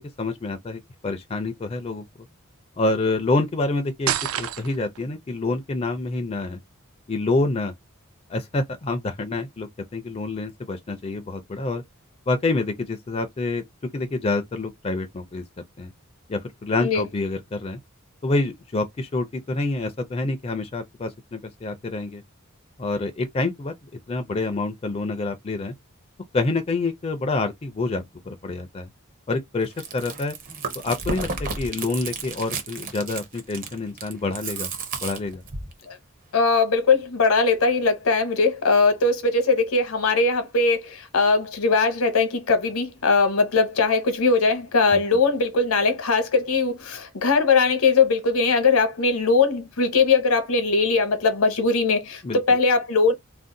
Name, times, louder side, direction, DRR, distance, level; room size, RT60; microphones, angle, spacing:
voice 1, 0.0-2.0 2.8-6.6 7.1-7.7 8.3-11.8 12.3-13.7 13.9-15.4 15.8-15.9 16.3-17.8 18.2-22.2 22.8-23.7 24.1-25.7 26.3-28.9 29.3-30.3 30.8-34.7 35.0-35.4 44.9-45.0 52.2-52.4, left 2 dB, 30° left, 0.4 m, -27 dB
sound 1, 4.1-5.0, right 10 dB, 85° right, 0.4 m, -27 dB
Chewing mastication, 29.6-35.7, right 4 dB, 40° right, 0.7 m, -32 dB
voice 2, 36.3-53.1, left 4 dB, 80° left, 0.9 m, -20 dB
2.6 x 2.1 x 3.7 m
head